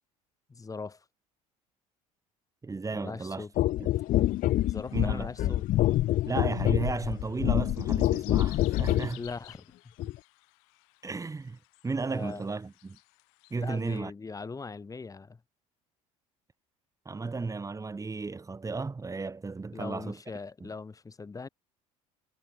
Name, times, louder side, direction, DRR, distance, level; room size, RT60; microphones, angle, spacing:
voice 1, 0.5-1.0 2.9-3.5 4.6-5.7 9.2-10.1 12.1-12.5 13.5-15.4 19.7-21.5, left 4 dB, 20° left, 1.2 m, -40 dB
voice 2, 2.6-3.4 3.8-3.9 4.9-5.5 6.3-9.2 11.0-13.0 13.5-14.1 17.0-20.2 20.6-20.7, right 4 dB, 20° right, 1.5 m, -34 dB
sound 1, 3.6-9.1 10.0-10.2, left 15 dB, 50° left, 0.7 m, -26 dB
sound 2, 3.9-14.0, left 36 dB, 75° left, 2.9 m, -55 dB
hypercardioid pair, 75°, 18 cm